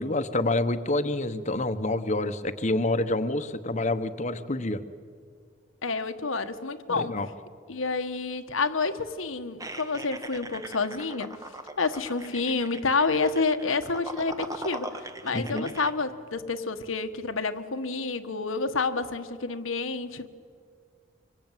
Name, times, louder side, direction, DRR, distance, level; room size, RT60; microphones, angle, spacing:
voice 1, 0.0-4.8 6.9-7.3 15.3-15.7, left 2 dB, 35° left, 11 dB, 1.1 m, -27 dB
voice 2, 5.8-7.1 7.7-11.4 11.8-20.3, left 4 dB, 85° left, 8 dB, 1.4 m, -29 dB
sound 1, 9.6-15.9, right 2 dB, 15° right, 1.2 m, -40 dB
26.0 x 24.0 x 9.1 m, 2.1 s
head